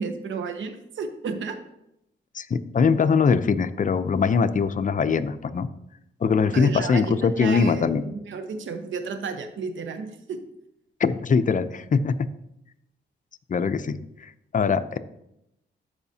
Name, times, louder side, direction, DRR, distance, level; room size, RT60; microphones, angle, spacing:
voice 1, 0.0-1.6 6.5-10.4, right 5 dB, 80° right, 7 dB, 0.9 m, -32 dB
voice 2, 2.3-5.7 6.2-8.0 11.0-12.1 13.5-15.0, left 5 dB, 40° left, 11 dB, 0.5 m, -22 dB
12.5 x 5.0 x 2.8 m, 0.82 s
cardioid pair, 60°, 20 cm